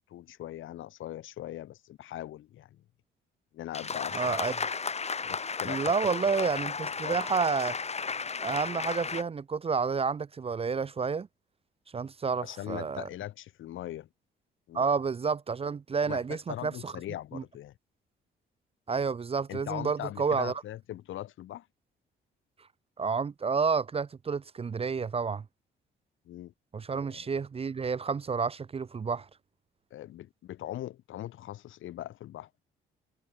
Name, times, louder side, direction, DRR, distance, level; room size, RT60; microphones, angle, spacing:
voice 1, 0.0-2.8 3.5-4.4 5.3-6.1 6.4-6.5 7.0-7.2 12.4-14.1 14.7-14.8 16.0-17.7 19.5-21.7 26.3-26.5 27.1-27.3 29.9-32.5, left 13 dB, 80° left, 3.7 m, -40 dB
sound 1, 3.7-9.2, left 5 dB, 35° left, 2.9 m, -34 dB
voice 2, 4.1-4.5 5.6-7.8 8.4-11.3 11.9-13.1 14.7-16.9 17.3-17.4 18.9-20.5 23.0-25.4 26.7-29.3, right 5 dB, 30° right, 0.6 m, -30 dB
cardioid pair, 90°, 20 cm